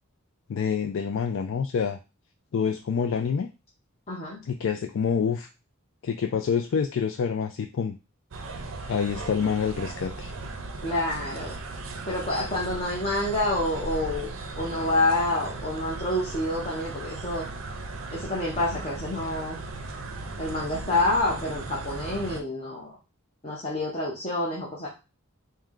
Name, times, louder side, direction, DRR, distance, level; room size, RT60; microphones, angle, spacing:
voice 1, 0.5-2.0 2.5-3.5 4.5-5.5 6.0-7.9 8.8-10.3, left 6 dB, 65° left, 6 dB, 0.3 m, -27 dB
voice 2, 4.1-4.4 10.8-11.5 12.1-17.4 18.1-19.6 20.4-23.0 23.4-24.9, left 2 dB, 30° left, -5 dB, 0.9 m, -28 dB
sound 1, 8.3-22.4, right 2 dB, 65° right, 0.6 m, -37 dB
4.5 x 2.2 x 3.7 m, 0.29 s
head